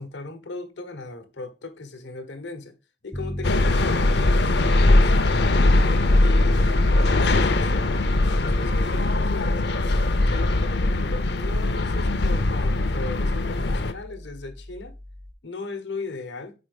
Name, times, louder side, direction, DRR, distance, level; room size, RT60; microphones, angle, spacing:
voice 1, 0.0-2.7 3.0-6.6 7.1-9.6 10.3-14.9 15.4-16.5, left 3 dB, 85° left, 1.0 m, -37 dB
Piano, 3.1-15.3, equal, 5° left, 0.4 m, -36 dB
sound 1, 3.4-13.9, left 2 dB, 70° left, 0.6 m, -21 dB
4.9 x 4.4 x 5.2 m
head